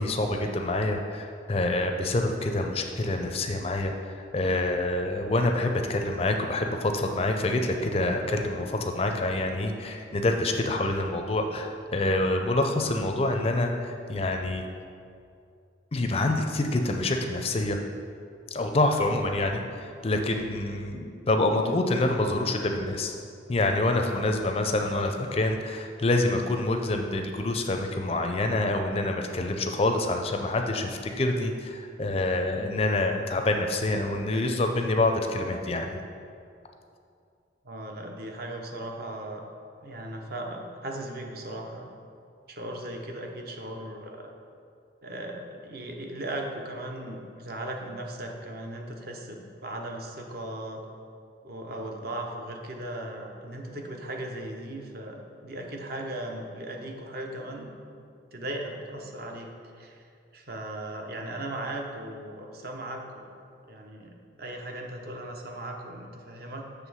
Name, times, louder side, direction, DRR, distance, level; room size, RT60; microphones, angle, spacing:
voice 1, 0.0-14.6 15.9-17.8 18.5-23.2 23.5-36.0, left 2 dB, 30° left, 4 dB, 0.4 m, -27 dB
voice 2, 37.6-39.4 39.8-41.9 42.5-44.3 45.0-50.9 51.4-57.7 58.3-59.5 59.8-60.0 60.3-63.3 63.7-66.9, right 1 dB, 50° right, 2 dB, 0.7 m, -37 dB
7.3 x 3.4 x 6.1 m, 2.4 s
head